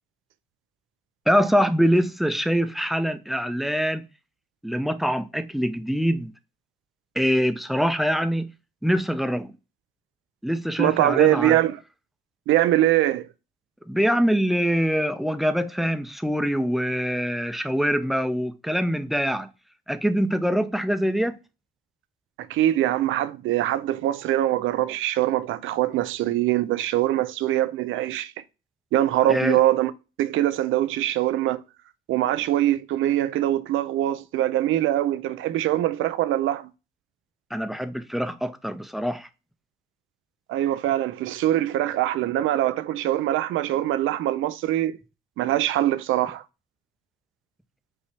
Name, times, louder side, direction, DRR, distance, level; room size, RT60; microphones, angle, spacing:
voice 1, 1.3-4.0 4.6-6.3 7.2-8.5 8.8-9.5 10.4-11.6 13.9-19.5 19.9-21.4 29.3-29.6 37.5-39.3, equal, ahead, 0.5 m, -24 dB
voice 2, 10.8-11.8 12.5-13.3 22.4-28.3 28.9-29.9 30.2-31.6 32.1-36.7 40.5-45.0 45.4-46.4, right 13 dB, 80° right, 0.5 m, -23 dB
5.4 x 2.8 x 3.3 m
cardioid pair, 90°, 20 cm